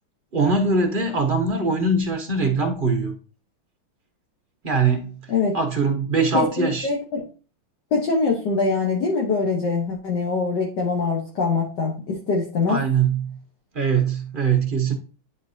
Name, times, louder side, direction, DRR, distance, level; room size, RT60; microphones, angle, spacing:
voice 1, 0.3-3.1 4.6-6.9 12.7-13.4 13.7-14.9, right 4 dB, 50° right, 0.6 m, -22 dB
voice 2, 6.3-7.2 7.9-12.8, left 4 dB, 60° left, 1.6 m, -23 dB
9.6 x 4.5 x 2.7 m
omnidirectional pair, 2.3 m